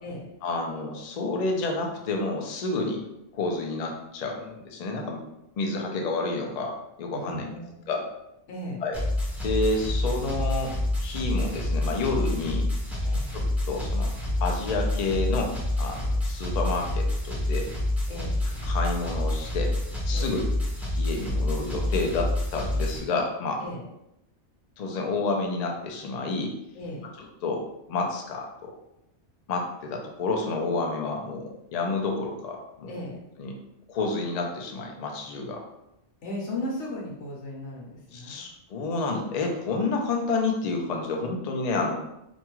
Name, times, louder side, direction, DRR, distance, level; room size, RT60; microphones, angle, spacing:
voice 1, 0.4-3.0 3.3-5.2 5.6-7.5 7.9-8.1 8.8-9.0 9.4-12.7 13.3-14.1 14.4-17.7 18.6-19.8 20.1-20.4 21.0-23.6 24.8-26.5 27.2-27.6 27.9-28.7 29.5-32.9 33.4-33.6 33.9-35.6 38.1-42.0, left 3 dB, 90° left, 2 dB, 0.3 m, -29 dB
voice 2, 7.1-7.9 8.5-8.8 13.0-13.3 18.1-18.4 20.1-20.4 23.6-23.8 26.7-27.1 32.9-33.2 36.2-38.4, left 1 dB, 70° left, -2 dB, 1.1 m, -36 dB
sound 1, 8.9-23.0, left 1 dB, ahead, 0.5 m, -28 dB
2.5 x 2.3 x 3.0 m, 0.86 s
omnidirectional pair, 1.3 m